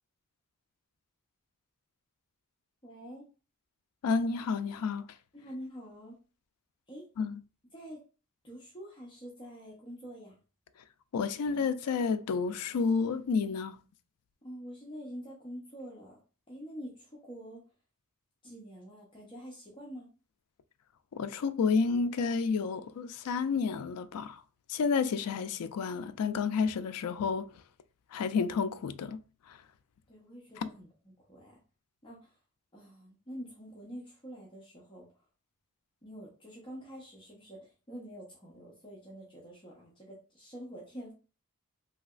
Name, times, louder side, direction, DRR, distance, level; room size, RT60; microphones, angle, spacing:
voice 1, 2.8-3.3 5.3-6.1 6.9-7.1 7.7-8.0 8.4-10.4 14.4-16.2 16.5-17.6 18.4-20.1 30.1-31.6 32.0-32.4 32.7-35.1 36.0-41.1, equal, 20° left, 0.7 m, -46 dB
voice 2, 4.0-5.1 7.2-7.4 11.1-13.8 21.1-24.4 24.7-27.4 28.1-29.2 29.5-29.6 30.6-30.7, left 5 dB, 80° left, 0.3 m, -30 dB
3.2 x 2.8 x 2.4 m
head